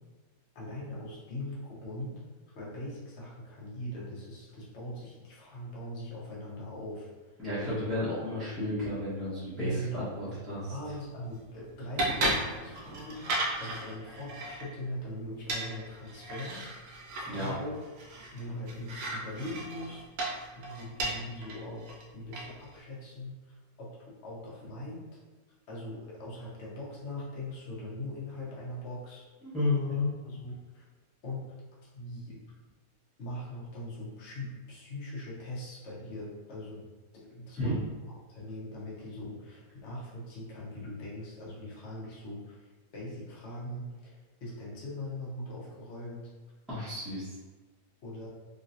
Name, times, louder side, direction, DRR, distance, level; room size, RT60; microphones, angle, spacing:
voice 1, 0.5-2.2 2.5-7.9 9.6-10.1 10.7-16.6 17.2-17.8 18.3-25.1 25.7-29.3 29.9-30.8 31.2-31.4 31.9-32.4 33.2-36.8 37.1-37.9 38.3-46.3 48.0-48.3, left 1 dB, 50° left, -6 dB, 0.9 m, -41 dB
voice 2, 7.4-10.7 17.3-17.5 29.4-30.1 37.6-37.8 46.7-47.2, left 2 dB, ahead, -14 dB, 0.8 m, -32 dB
sound 1, 10.8-22.8, right 1 dB, 65° right, 0.8 m, -37 dB
3.1 x 2.9 x 2.6 m, 1.3 s
omnidirectional pair, 1.9 m